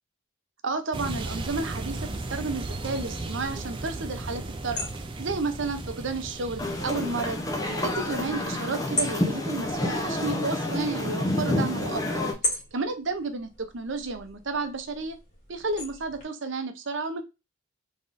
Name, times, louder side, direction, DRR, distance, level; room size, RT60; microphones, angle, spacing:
voice 1, 0.6-4.9 5.2-7.4 7.7-15.2 15.5-17.2, right 3 dB, 55° right, 8 dB, 0.7 m, -32 dB
sound 1, 0.9-8.8, right 2 dB, 25° right, 0.4 m, -36 dB
sound 2, 1.6-16.2, left 1 dB, 35° left, 1.9 m, -40 dB
sound 3, 6.6-12.3, left 1 dB, 15° left, 0.7 m, -29 dB
3.6 x 3.5 x 2.5 m, 0.26 s
head